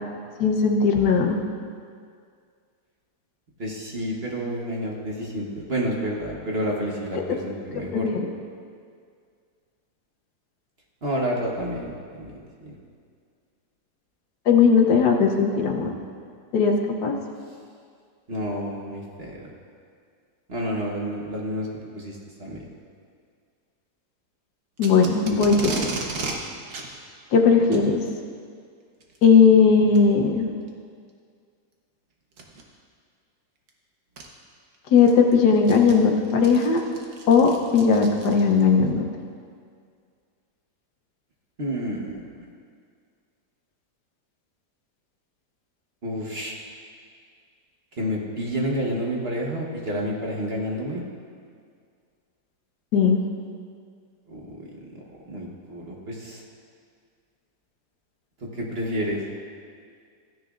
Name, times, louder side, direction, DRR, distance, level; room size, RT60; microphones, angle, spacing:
voice 1, 0.4-1.4 7.9-8.1 14.5-15.9 16.5-16.8 17.0-17.1 24.8-25.8 27.3-28.0 29.2-30.5 34.9-36.8 37.3-39.0 52.9-53.2, left 5 dB, 80° left, 2 dB, 1.5 m, -18 dB
voice 2, 3.6-8.1 11.0-12.3 12.6-12.7 18.3-19.5 20.5-21.7 21.9-22.6 41.6-42.3 46.0-46.6 48.0-51.0 54.3-56.4 58.4-59.2, equal, 40° right, -2 dB, 1.3 m, -30 dB
Packing tape duct tape, 24.8-26.4 26.7-26.9 27.6-27.9 29.0-29.2 29.9-30.0 30.7-30.8 32.3-32.6 33.7-33.8 34.2-34.3 34.7-38.7, right 3 dB, 70° right, 1.5 m, -34 dB
15.0 x 10.0 x 2.5 m, 2.1 s
omnidirectional pair, 1.7 m